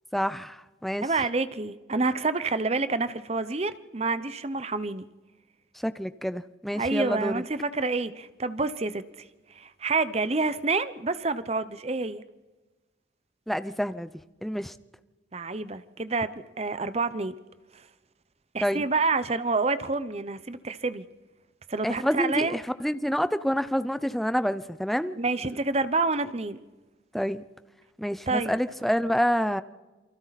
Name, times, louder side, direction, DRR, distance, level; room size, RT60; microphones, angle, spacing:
voice 1, 0.1-1.1 5.8-7.4 13.5-14.1 14.4-14.7 18.6-18.9 21.8-25.2 27.1-27.4 28.0-29.6, equal, ahead, 12 dB, 0.6 m, -28 dB
voice 2, 1.0-5.1 6.7-9.2 9.6-12.2 15.3-16.3 16.6-17.3 18.5-21.1 21.7-22.6 25.2-26.6 28.3-28.5, right 3 dB, 35° right, 13 dB, 0.8 m, -28 dB
29.0 x 23.5 x 4.1 m, 1.2 s
head